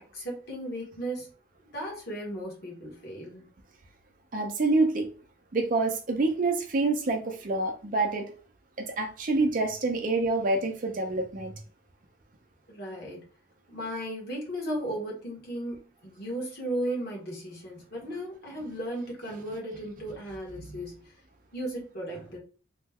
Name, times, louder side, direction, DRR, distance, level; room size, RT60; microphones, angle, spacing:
voice 1, 0.1-1.3 1.7-3.4 12.7-13.2 13.7-15.8 16.0-21.1 21.5-22.4, right 1 dB, 50° left, -2 dB, 1.3 m, -35 dB
voice 2, 4.3-5.1 5.5-8.3 8.8-11.5 20.6-20.8, right 3 dB, 40° right, 4 dB, 0.5 m, -27 dB
3.1 x 2.2 x 3.4 m, 0.37 s
head